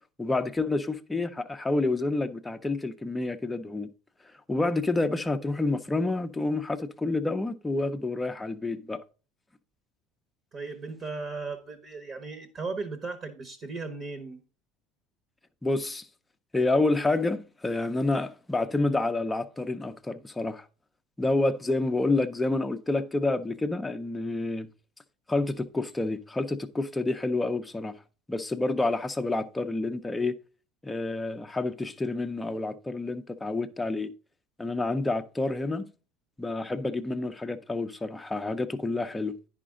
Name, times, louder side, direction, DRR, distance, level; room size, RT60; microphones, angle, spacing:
voice 1, 0.2-3.9 4.5-9.0 15.6-16.1 16.5-20.6 21.2-24.7 25.3-28.0 28.3-30.3 30.8-34.1 34.6-35.9 36.4-39.4, left 2 dB, 10° left, 0.6 m, -28 dB
voice 2, 10.5-14.4, right 4 dB, 35° right, 1.1 m, -36 dB
9.8 x 5.0 x 3.7 m
supercardioid pair, 110°, 0 cm